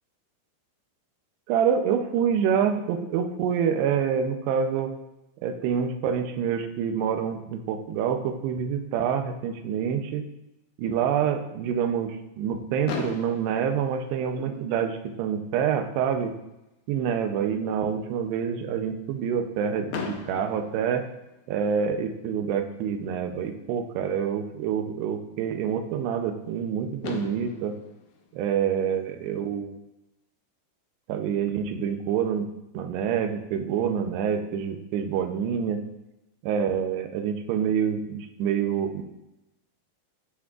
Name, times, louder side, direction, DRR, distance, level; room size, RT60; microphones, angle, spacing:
voice 1, 1.5-4.9 5.4-10.2 10.8-16.3 16.9-21.1 21.5-27.8 28.3-29.7 31.1-32.5 32.7-35.8 36.4-39.0, right 7 dB, 85° right, 6 dB, 2.8 m, -27 dB
Fireworks, 12.9-14.9 15.7-15.8 16.0-16.2 16.5-16.6 19.9-21.7 23.4-23.5 26.6-26.7 27.0-29.3, left 6 dB, 85° left, 1.7 m, -39 dB
11.5 x 6.0 x 2.4 m, 0.93 s
omnidirectional pair, 4.8 m